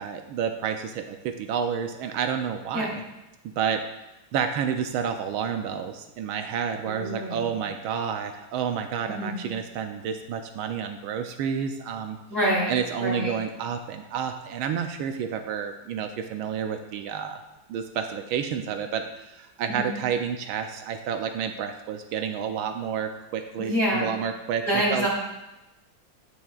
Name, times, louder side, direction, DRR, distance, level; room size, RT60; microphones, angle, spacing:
voice 1, 0.0-3.0 3.6-3.8 4.3-12.2 12.7-17.4 17.7-24.6 24.9-25.1, right 7 dB, 85° right, 6 dB, 1.4 m, -30 dB
voice 2, 6.8-7.5 9.1-9.5 12.3-13.4 19.7-20.0 23.6-24.1 24.6-25.1, equal, 10° right, -7 dB, 3.4 m, -27 dB
11.0 x 8.8 x 2.4 m, 0.98 s
omnidirectional pair, 2.2 m